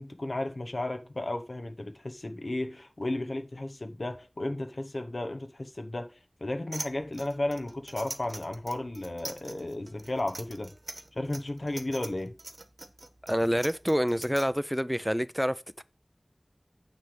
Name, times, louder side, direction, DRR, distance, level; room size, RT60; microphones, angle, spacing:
voice 1, 0.0-6.1 6.4-10.7 11.1-12.3, left 1 dB, 70° left, 0.9 m, -34 dB
sound 1, 6.7-14.5, right 2 dB, 80° right, 1.0 m, -42 dB
voice 2, 13.3-15.8, equal, 5° right, 0.4 m, -27 dB
9.4 x 3.4 x 6.8 m
wide cardioid pair, 40°, 0 cm